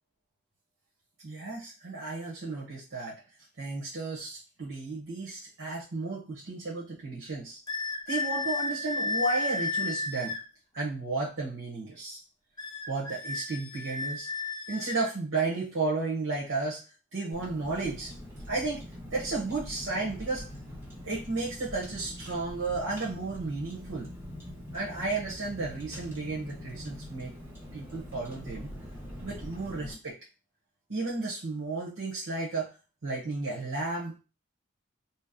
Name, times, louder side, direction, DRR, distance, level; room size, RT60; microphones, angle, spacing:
voice 1, 1.2-3.2 3.6-7.6 8.1-10.4 10.7-12.2 12.9-14.3 14.7-16.8 17.1-18.1 18.5-18.8 19.1-20.5 21.0-24.1 24.7-27.3 27.7-28.7 29.2-30.2 30.9-32.7 33.0-34.2, right 3 dB, 90° right, -5 dB, 1.0 m, -33 dB
sound 1, 7.7-10.4 12.6-15.1, left 3 dB, 20° left, 0.4 m, -33 dB
Car, 17.3-29.9, left 1 dB, 10° right, 0.9 m, -43 dB
2.8 x 2.1 x 3.7 m, 0.32 s
head